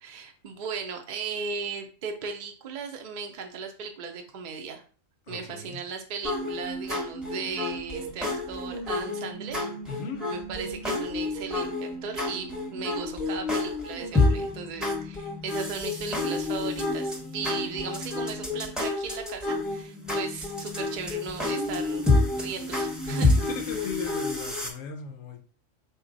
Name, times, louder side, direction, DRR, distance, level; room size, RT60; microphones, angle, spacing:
voice 1, 0.0-4.8 5.3-9.6 9.9-10.0 10.3-22.0 22.3-23.4, right 5 dB, 60° right, 0.5 m, -37 dB
voice 2, 5.3-5.8 9.9-10.3 23.1-25.4, left 4 dB, 70° left, 0.9 m, -36 dB
sound 1, 6.2-24.7, left 2 dB, ahead, 0.7 m, -29 dB
4.1 x 2.2 x 3.8 m
omnidirectional pair, 1.4 m